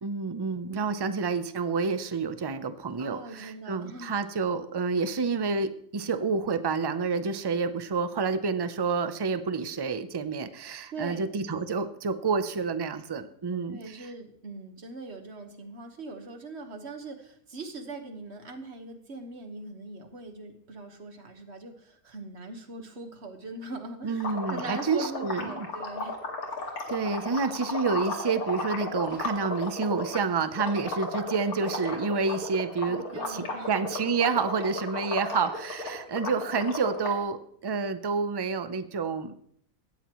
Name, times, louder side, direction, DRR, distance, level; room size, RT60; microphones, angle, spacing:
voice 1, 0.0-14.1 24.0-25.7 26.9-39.3, right 4 dB, 35° right, 11 dB, 0.4 m, -29 dB
voice 2, 3.0-4.2 10.9-11.3 13.7-26.2 32.8-33.7, right 3 dB, 50° right, 6 dB, 1.7 m, -41 dB
sound 1, 24.2-30.2 30.5-37.1, left 3 dB, 90° left, 2.7 m, -34 dB
17.5 x 12.5 x 3.1 m, 0.64 s
omnidirectional pair, 1.5 m